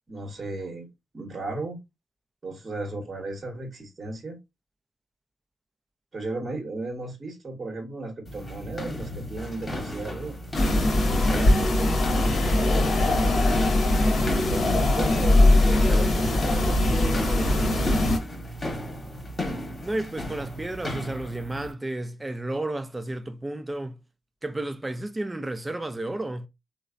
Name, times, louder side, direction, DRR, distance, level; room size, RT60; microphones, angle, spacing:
voice 1, 0.1-0.9 1.1-1.8 2.4-4.4 6.1-10.4 11.0-13.7 14.0-18.0, right 2 dB, 40° right, 1.0 m, -35 dB
sound 1, 8.3-21.7, left 1 dB, 35° left, 1.0 m, -35 dB
sound 2, 10.5-18.2, left 1 dB, 50° left, 0.8 m, -21 dB
voice 2, 19.8-24.0 24.4-26.5, right 1 dB, 20° right, 0.5 m, -32 dB
3.1 x 2.0 x 2.4 m
hypercardioid pair, 45°, 0 cm